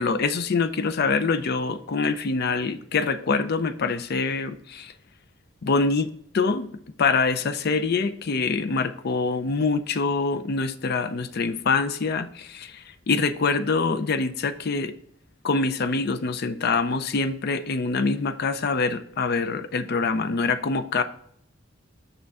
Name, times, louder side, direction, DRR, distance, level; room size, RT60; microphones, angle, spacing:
voice 1, 0.0-4.9 5.6-6.1 6.3-6.7 7.0-14.9 15.4-21.0, left 4 dB, 55° left, 12 dB, 0.5 m, -25 dB
6.8 x 6.4 x 3.6 m, 0.68 s
head